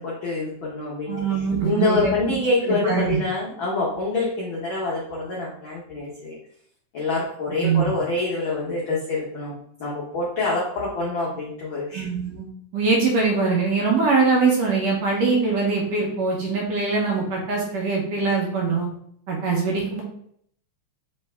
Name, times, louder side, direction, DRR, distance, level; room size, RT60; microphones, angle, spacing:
voice 1, 0.0-6.4 6.9-12.1, left 2 dB, 80° left, -5 dB, 1.1 m, -26 dB
voice 2, 1.1-2.1 2.7-3.2 7.6-7.9 11.9-12.5 12.7-18.9 19.3-20.0, right 4 dB, 70° right, -1 dB, 1.8 m, -22 dB
4.5 x 3.1 x 3.3 m, 0.67 s
omnidirectional pair, 3.5 m